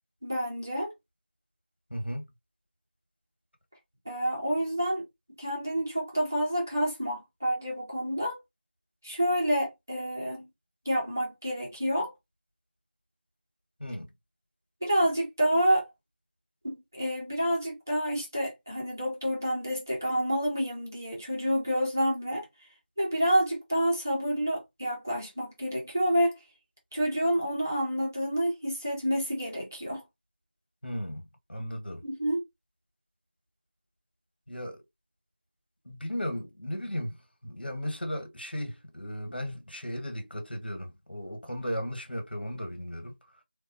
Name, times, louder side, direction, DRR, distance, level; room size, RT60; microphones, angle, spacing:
voice 1, 0.2-0.9 4.0-5.0 5.4-8.4 9.0-10.5 10.9-12.1 14.8-15.9 16.6-22.5 23.0-26.4 26.9-30.0 32.0-32.4, equal, 15° right, 0.7 m, -28 dB
voice 2, 1.9-2.2 13.8-14.1 30.8-31.2 31.5-32.0 34.5-34.8 35.8-37.2 37.4-43.2, equal, 65° left, 1.4 m, -35 dB
3.6 x 2.3 x 2.8 m
figure-of-eight pair, 175°, 6 cm